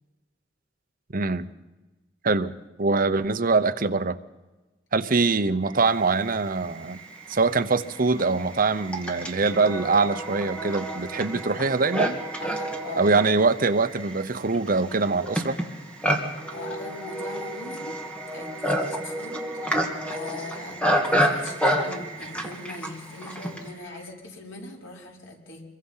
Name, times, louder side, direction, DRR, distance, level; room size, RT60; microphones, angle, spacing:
voice 1, 1.1-1.5 2.2-2.5 2.8-4.2 4.9-7.0 7.3-12.2 13.0-15.6, right 3 dB, 50° right, 10 dB, 0.9 m, -23 dB
sound 1, 5.6-24.1, right 6 dB, 30° right, 6.2 m, -44 dB
Livestock farm animals working animals, 6.9-7.0 7.8-23.7, equal, 5° left, 2.5 m, -29 dB
voice 2, 12.4-13.1 16.5-18.0 18.3-25.6, left 2 dB, 85° left, -1 dB, 4.9 m, -41 dB
26.0 x 22.5 x 5.7 m, 1.1 s
head